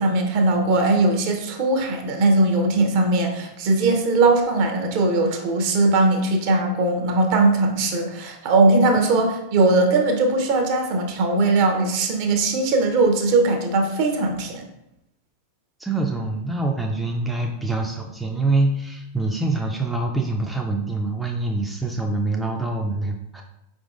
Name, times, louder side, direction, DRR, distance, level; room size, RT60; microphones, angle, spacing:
voice 1, 0.0-14.6, right 2 dB, 45° right, 3 dB, 0.8 m, -20 dB
voice 2, 15.8-23.4, right 2 dB, 5° right, 1 dB, 0.4 m, -25 dB
4.6 x 3.6 x 2.5 m, 0.84 s
figure-of-eight pair, 90°, 0 cm